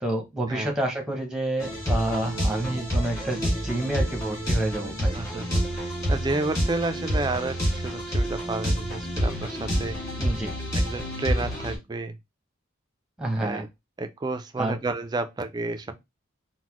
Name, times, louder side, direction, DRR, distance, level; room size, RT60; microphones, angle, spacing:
voice 1, 0.0-5.2 10.2-10.6 13.2-13.6 14.6-14.8, right 1 dB, 5° right, 0.7 m, -29 dB
sound 1, 1.6-11.8, equal, 15° left, 1.8 m, -28 dB
voice 2, 5.1-10.0 10.7-12.2 13.4-13.7 14.0-15.9, right 3 dB, 20° right, 0.3 m, -31 dB
3.9 x 2.1 x 3.0 m
head